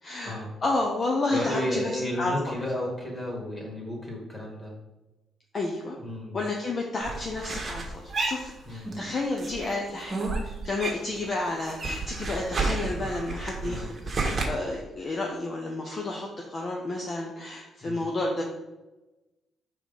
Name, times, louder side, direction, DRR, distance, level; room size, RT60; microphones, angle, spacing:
voice 1, 0.0-0.3 0.6-1.9 2.2-2.5 5.5-5.9 6.3-10.2 10.4-13.9 14.2-18.4, left 2 dB, 40° left, -1 dB, 0.8 m, -31 dB
voice 2, 1.3-4.7 6.0-6.4 8.7-9.0 13.6-13.9 17.8-18.0, left 1 dB, 20° left, -2 dB, 2.1 m, -32 dB
sound 1, 7.0-9.1 9.4-11.2 11.5-14.4, right 3 dB, 40° right, 1.2 m, -31 dB
4.7 x 3.9 x 5.3 m, 1.0 s
cardioid pair, 90°, 0 cm